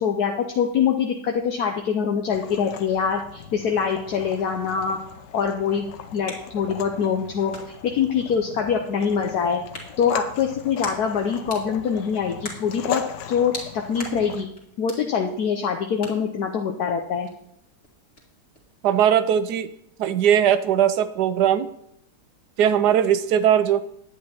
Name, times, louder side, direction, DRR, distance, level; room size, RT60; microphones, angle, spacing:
voice 1, 0.0-5.0 5.3-7.5 7.8-9.6 10.0-13.0 13.3-13.5 13.9-14.5 14.8-17.3, left 7 dB, 65° left, 2 dB, 1.3 m, -24 dB
sound 1, 2.3-14.5, left 8 dB, 85° left, 1.5 m, -38 dB
sound 2, 5.6-18.9, left 1 dB, 40° left, 2.5 m, -44 dB
voice 2, 18.8-19.7 20.0-21.7 22.6-23.8, right 9 dB, 75° right, 12 dB, 1.2 m, -19 dB
10.5 x 8.7 x 4.3 m, 0.75 s
omnidirectional pair, 1.8 m